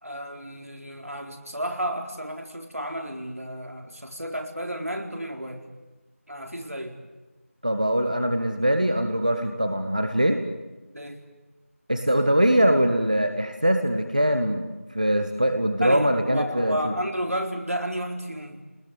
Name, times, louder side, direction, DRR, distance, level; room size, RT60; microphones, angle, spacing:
voice 1, 0.0-5.6 6.3-7.0 10.9-11.2 15.8-18.6, equal, 80° right, 3 dB, 4.1 m, -32 dB
voice 2, 7.6-10.4 11.9-16.9, equal, 35° right, 6 dB, 1.2 m, -22 dB
26.0 x 20.0 x 9.4 m, 1.1 s
figure-of-eight pair, 175°, 8 cm